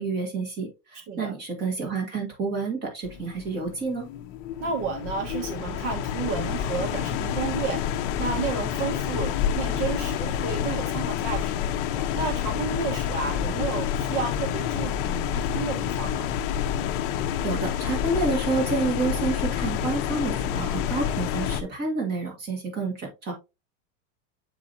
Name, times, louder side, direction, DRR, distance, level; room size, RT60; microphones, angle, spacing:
voice 1, 0.0-4.1 17.4-23.3, right 3 dB, 25° right, 2.1 m, -29 dB
sound 1, 3.0-21.6, left 9 dB, 40° left, 0.6 m, -28 dB
voice 2, 4.6-7.8 8.2-11.7 12.1-16.4, right 6 dB, 65° right, 1.4 m, -32 dB
7.3 x 5.0 x 2.7 m
supercardioid pair, 170°, 38 cm